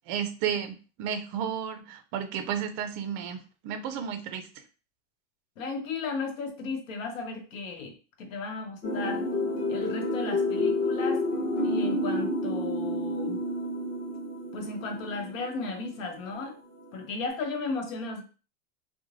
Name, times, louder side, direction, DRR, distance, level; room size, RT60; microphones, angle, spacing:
voice 1, 0.1-4.5, right 8 dB, 35° right, 8 dB, 0.4 m, -32 dB
voice 2, 5.6-9.2 9.7-11.2 11.6-13.4 14.5-16.6 16.9-18.2, left 4 dB, 80° left, 3 dB, 0.9 m, -35 dB
sound 1, 8.8-16.5 16.9-17.0, left 1 dB, 25° left, 0.7 m, -30 dB
2.4 x 2.1 x 3.1 m, 0.35 s
supercardioid pair, 140°, 39 cm